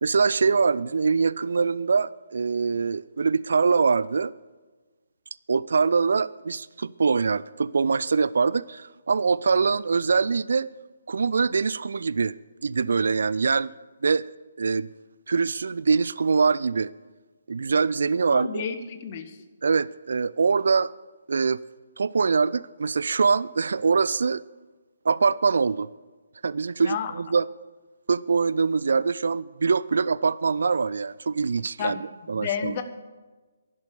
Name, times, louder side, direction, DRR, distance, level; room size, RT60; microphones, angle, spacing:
voice 1, 0.0-4.3 5.5-10.7 11.1-12.3 12.6-13.7 14.0-14.9 15.3-16.9 17.5-18.6 19.6-20.9 21.3-21.6 22.0-24.4 25.0-25.9 26.4-27.5 28.1-32.8, right 5 dB, 55° right, 0.3 m, -23 dB
voice 2, 18.3-19.3 26.9-27.1 31.8-32.0 32.3-32.8, left 8 dB, 35° left, 1.2 m, -31 dB
11.5 x 11.5 x 8.2 m
figure-of-eight pair, 135°, 0 cm